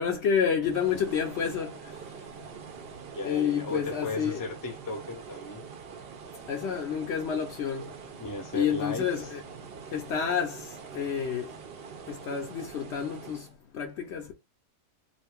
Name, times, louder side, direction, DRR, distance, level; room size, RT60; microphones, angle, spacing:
voice 1, 0.0-1.7 3.2-4.4 6.5-7.9 8.5-9.4 9.9-10.6 10.9-11.5 12.1-13.5 13.7-14.3, left 7 dB, 65° left, 0.8 m, -29 dB
sound 1, 0.6-13.5, right 6 dB, 60° right, 0.7 m, -44 dB
voice 2, 3.1-5.6 8.2-9.3, left 2 dB, 20° left, 0.5 m, -36 dB
2.5 x 2.5 x 3.4 m
omnidirectional pair, 1.4 m